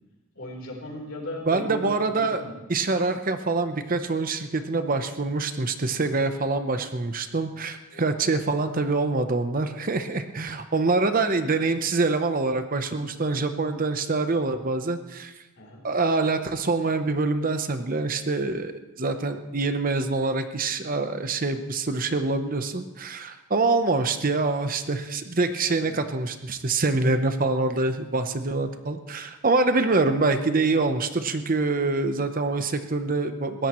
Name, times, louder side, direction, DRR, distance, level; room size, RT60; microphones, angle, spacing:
voice 1, 0.4-2.6 7.9-8.3 15.6-15.8 25.7-26.1, left 1 dB, 60° left, 0 dB, 4.0 m, -38 dB
voice 2, 1.5-2.4 2.7-15.3 15.8-18.7 19.0-33.7, right 3 dB, 40° right, 8 dB, 0.8 m, -25 dB
21.5 x 16.5 x 3.1 m, 1.0 s
head